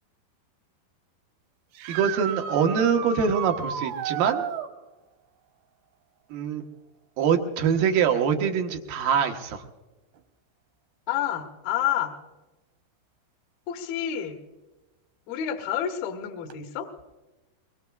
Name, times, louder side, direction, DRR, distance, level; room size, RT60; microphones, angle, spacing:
sound 1, 1.7-4.7 8.0-8.1 10.2-10.3 16.5-16.6, right 8 dB, 90° right, 3.2 m, -33 dB
voice 1, 1.9-4.4 6.3-6.6 7.2-9.6, right 7 dB, 70° right, 4 dB, 2.6 m, -24 dB
voice 2, 11.1-12.1 13.7-14.4 15.3-16.9, left 10 dB, 70° left, 5 dB, 2.7 m, -29 dB
23.5 x 23.5 x 2.3 m, 1.1 s
omnidirectional pair, 4.8 m